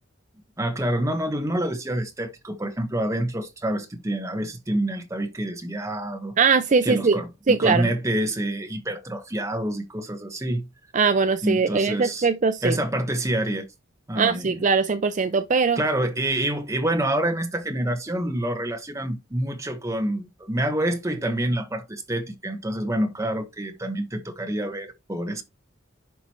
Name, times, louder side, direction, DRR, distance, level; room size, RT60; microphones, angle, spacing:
voice 1, 0.6-6.3 6.8-7.3 7.6-10.7 11.4-12.3 12.6-13.6 14.1-14.6 15.8-25.4, right 1 dB, 15° right, 1.1 m, -27 dB
voice 2, 6.4-7.2 7.5-7.9 10.9-12.8 14.2-15.8, right 5 dB, 40° right, 0.5 m, -21 dB
10.5 x 5.1 x 3.0 m
head